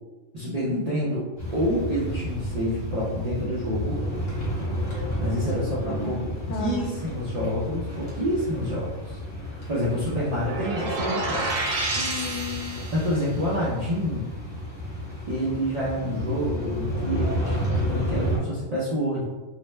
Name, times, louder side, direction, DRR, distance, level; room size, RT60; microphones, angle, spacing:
voice 1, 0.3-4.0 4.8-6.2 6.6-11.7 12.7-14.3 15.3-19.2, equal, 60° right, -8 dB, 0.4 m, -28 dB
sound 1, 1.4-18.4, equal, 40° left, 0.8 m, -31 dB
voice 2, 5.8-6.9 11.9-12.9, left 3 dB, 75° left, 0 dB, 0.9 m, -34 dB
sound 2, 10.4-13.2, right 2 dB, 85° right, 1.0 m, -29 dB
2.5 x 2.1 x 3.0 m, 1.2 s
omnidirectional pair, 1.4 m